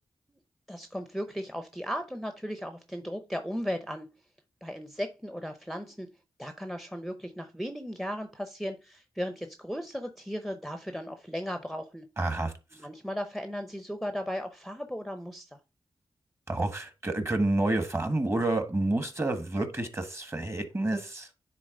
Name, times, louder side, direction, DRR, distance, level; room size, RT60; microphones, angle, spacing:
voice 1, 0.7-4.1 4.6-6.1 6.4-12.1 12.7-15.6, equal, ahead, 0.7 m, -36 dB
voice 2, 12.2-12.5 16.5-21.3, right 2 dB, 25° right, 1.4 m, -29 dB
9.9 x 3.8 x 3.7 m
wide cardioid pair, 90°, 10 cm